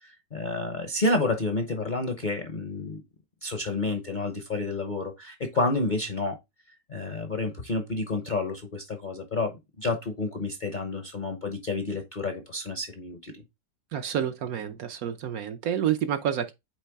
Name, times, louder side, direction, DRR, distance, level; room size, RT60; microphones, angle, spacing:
voice 1, 0.0-3.0 3.4-6.4 6.9-13.3, left 2 dB, 40° left, 0.7 m, -30 dB
voice 2, 13.9-16.5, right 10 dB, 65° right, 1.1 m, -29 dB
8.4 x 3.3 x 3.5 m
omnidirectional pair, 1.9 m